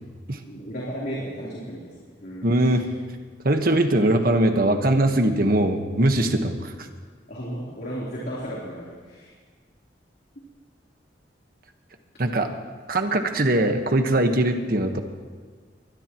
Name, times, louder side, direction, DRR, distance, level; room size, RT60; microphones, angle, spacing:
voice 1, 0.5-1.9 2.2-2.8 7.3-9.3, equal, 60° left, -7 dB, 3.6 m, -34 dB
voice 2, 2.4-2.9 3.4-6.9 12.2-12.5 12.9-15.0, right 1 dB, 55° right, 6 dB, 1.4 m, -21 dB
22.5 x 20.0 x 3.1 m, 1.5 s
head